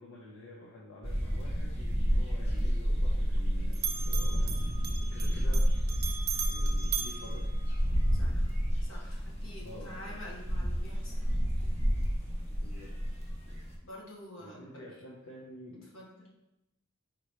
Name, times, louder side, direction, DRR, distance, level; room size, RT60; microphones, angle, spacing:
voice 1, 0.0-6.0 6.5-7.6 9.6-10.2 12.6-12.9 14.4-15.9, left 1 dB, 85° left, -5 dB, 0.7 m, -49 dB
sound 1, 1.0-13.8, equal, 30° left, 0.7 m, -30 dB
Bell, 2.1-3.5 3.7-8.2, right 7 dB, 45° right, 0.4 m, -39 dB
voice 2, 8.1-8.5 8.8-11.4 13.8-15.0 15.9-16.3, left 1 dB, 70° left, -4 dB, 1.2 m, -48 dB
4.4 x 2.9 x 3.2 m, 0.88 s
head